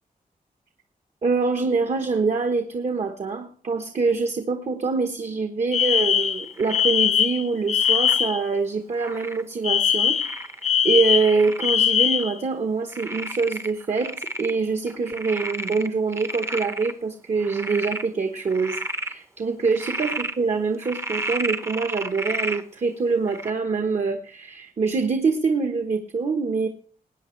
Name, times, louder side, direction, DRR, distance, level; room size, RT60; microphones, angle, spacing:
voice 1, 1.2-10.2 10.8-26.7, right 4 dB, 50° right, 6 dB, 1.3 m, -25 dB
Alarm, 5.7-8.4 9.6-12.4, left 8 dB, 50° left, 0.5 m, -21 dB
Frog, 6.6-6.9 7.8-8.2 9.0-9.4 10.2-10.7 11.2-11.7 12.2-12.3 12.9-14.6 14.9-16.9 17.4-18.1 18.5-19.1 19.6-20.3 20.8-22.6 23.3-23.5, right 1 dB, 15° right, 0.8 m, -32 dB
20.0 x 9.3 x 3.3 m, 0.43 s
wide cardioid pair, 165°, 15 cm